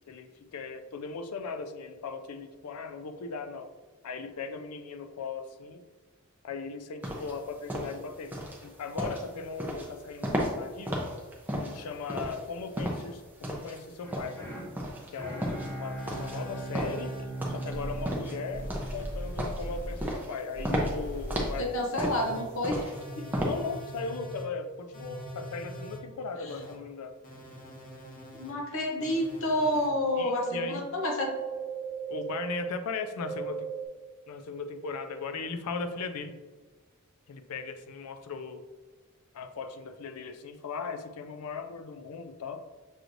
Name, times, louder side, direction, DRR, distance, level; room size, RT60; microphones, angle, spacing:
voice 1, 0.1-3.7 4.0-5.8 6.4-11.1 11.6-14.5 15.1-17.2 17.5-22.1 23.4-27.2 30.2-30.9 32.1-33.7 34.3-36.3 37.3-38.6 39.3-42.7, left 4 dB, 90° left, 8 dB, 0.4 m, -38 dB
sound 1, 7.0-23.9, equal, 10° right, 0.5 m, -34 dB
sound 2, 14.0-20.1, right 1 dB, 15° left, 1.3 m, -39 dB
sound 3, 16.0-17.2 17.7-18.0 18.5-20.0 20.5-21.6 22.1-22.4 22.9-24.4 24.9-26.0 26.5-26.7 27.2-28.5 29.0-29.9 30.4-30.7 31.2-32.7 33.2-33.9, right 3 dB, 40° left, 1.3 m, -39 dB
voice 2, 21.6-22.9 28.3-31.3, left 1 dB, 60° left, 0 dB, 0.7 m, -29 dB
6.3 x 3.1 x 2.5 m, 1.3 s
head